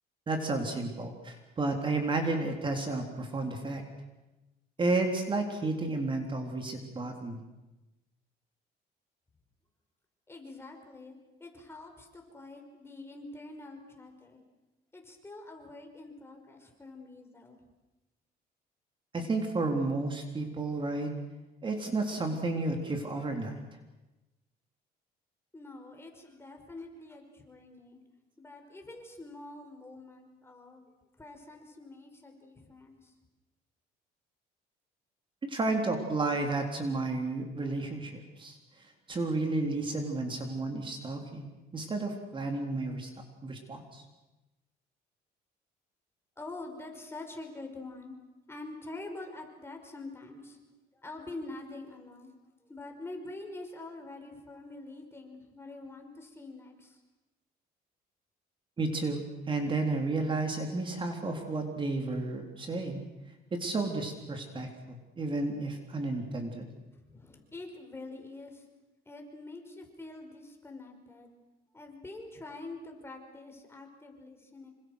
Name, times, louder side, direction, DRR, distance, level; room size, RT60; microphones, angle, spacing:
voice 1, 0.3-3.8 4.8-7.4 19.1-21.1 21.6-23.6 35.5-38.6 39.1-41.5 41.7-43.1 43.4-44.0 58.8-59.2 59.5-63.0 63.5-66.7, right 2 dB, 30° right, 4 dB, 3.5 m, -32 dB
voice 2, 10.3-14.4 14.9-17.6 25.5-28.0 28.4-30.9 31.2-33.1 46.4-48.2 48.5-50.6 50.9-52.3 52.7-57.0 67.1-68.6 69.1-71.3 71.7-74.7, left 2 dB, 15° left, 3 dB, 5.2 m, -45 dB
27.5 x 25.5 x 6.5 m, 1.0 s
cardioid pair, 110°, 17 cm